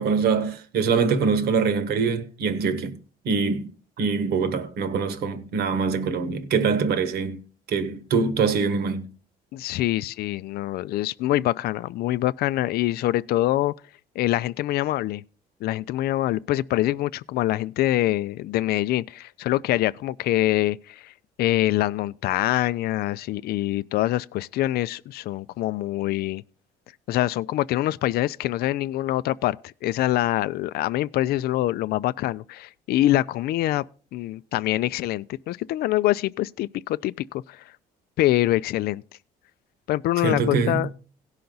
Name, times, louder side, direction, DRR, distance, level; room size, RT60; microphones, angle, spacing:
voice 1, 0.0-3.0 3.2-3.7 4.0-7.4 7.7-9.1 40.2-40.9, right 5 dB, 70° right, 1.4 m, -24 dB
voice 2, 9.5-13.7 14.2-15.2 15.6-21.1 21.4-26.4 27.1-33.8 34.1-37.6 38.2-39.0 39.9-40.9, left 15 dB, 70° left, 0.4 m, -25 dB
17.0 x 5.7 x 3.9 m
cardioid pair, 110°, 17 cm